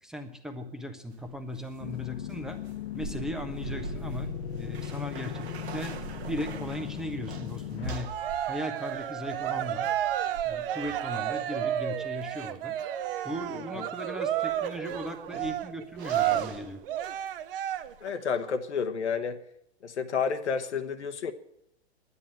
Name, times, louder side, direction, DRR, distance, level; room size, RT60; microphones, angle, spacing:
voice 1, 0.0-2.6 2.9-6.0 6.3-8.1 8.4-9.9 10.4-12.8 13.2-16.8, equal, ahead, 6 dB, 1.2 m, -37 dB
sound 1, 1.1-17.4 17.7-18.1, right 4 dB, 70° right, 1.6 m, -44 dB
sound 2, 1.8-7.9, left 11 dB, 60° left, 0.6 m, -38 dB
Cheering, 8.0-18.1, right 11 dB, 55° right, 0.9 m, -31 dB
voice 2, 18.0-19.4 19.8-21.3, left 6 dB, 85° left, 7 dB, 1.3 m, -30 dB
11.0 x 9.4 x 9.0 m, 0.78 s
hypercardioid pair, 130°, 33 cm